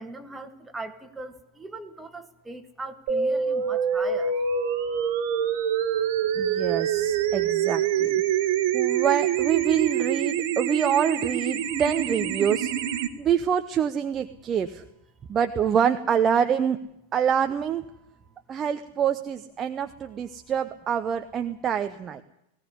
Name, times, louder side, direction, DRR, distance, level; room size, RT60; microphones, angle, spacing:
voice 1, 0.0-4.3, right 2 dB, 10° right, 6 dB, 2.1 m, -39 dB
sound 1, 3.1-13.1, right 8 dB, 50° right, 1.6 m, -25 dB
voice 2, 6.4-8.2 8.7-12.7 13.2-14.8 15.3-16.8 17.1-17.8 18.5-22.2, right 8 dB, 25° right, 8 dB, 1.0 m, -26 dB
18.5 x 18.5 x 9.8 m, 0.82 s
figure-of-eight pair, 90°, 0 cm